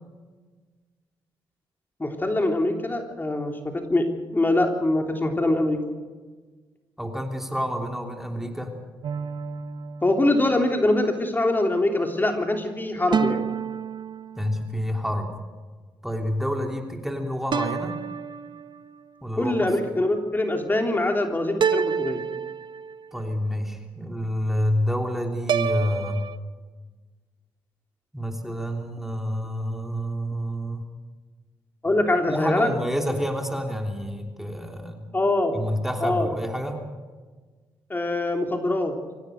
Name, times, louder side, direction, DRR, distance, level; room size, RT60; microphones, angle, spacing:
voice 1, 2.0-5.8 10.0-13.4 19.3-22.2 31.8-32.7 35.1-35.5 36.0-36.3 37.9-38.9, left 2 dB, 20° left, 3 dB, 3.4 m, -23 dB
voice 2, 7.0-8.7 14.4-15.3 16.0-18.0 19.2-19.7 23.1-26.3 28.1-30.8 32.3-35.1 35.5-36.8, equal, 5° right, 3 dB, 3.2 m, -28 dB
Electric Harp, 9.0-10.7 13.1-14.8 17.5-19.0 21.6-23.2 25.5-26.4, right 6 dB, 60° right, 1.1 m, -29 dB
25.5 x 16.5 x 6.6 m, 1.4 s
cardioid pair, 75°, 9 cm